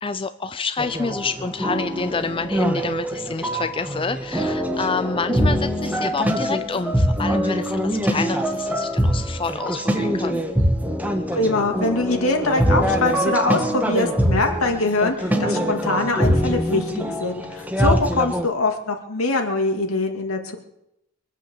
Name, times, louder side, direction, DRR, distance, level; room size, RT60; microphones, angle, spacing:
voice 1, 0.0-10.4, left 4 dB, 25° left, 10 dB, 0.5 m, -28 dB
sound 1, 0.8-18.5, equal, 10° right, 1.4 m, -23 dB
voice 2, 11.3-20.6, left 2 dB, 80° left, 3 dB, 2.6 m, -23 dB
23.0 x 8.2 x 7.4 m, 0.82 s
head